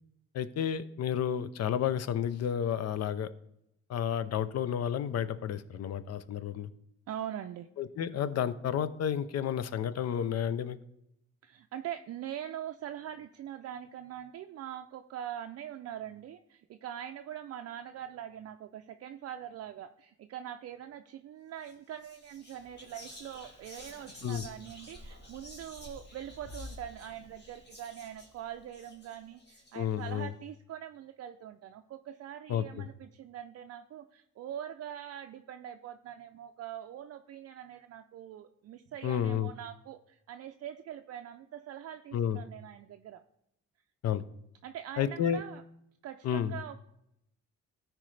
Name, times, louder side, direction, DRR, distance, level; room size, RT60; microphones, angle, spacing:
voice 1, 0.3-3.3 3.9-6.7 7.8-10.8 24.2-24.5 29.7-30.3 32.5-32.9 39.0-39.5 42.1-42.4 44.0-44.2 45.0-45.4 46.2-46.6, left 9 dB, 55° left, 15 dB, 0.6 m, -31 dB
voice 2, 7.1-7.7 11.4-43.2 44.6-45.6 46.0-46.8, right 10 dB, 55° right, 7 dB, 0.4 m, -43 dB
Whispering, 21.5-21.7 22.0-30.1, left 1 dB, 35° left, 2.1 m, -50 dB
13.0 x 4.6 x 3.3 m, 0.79 s
cardioid pair, 90°, 30 cm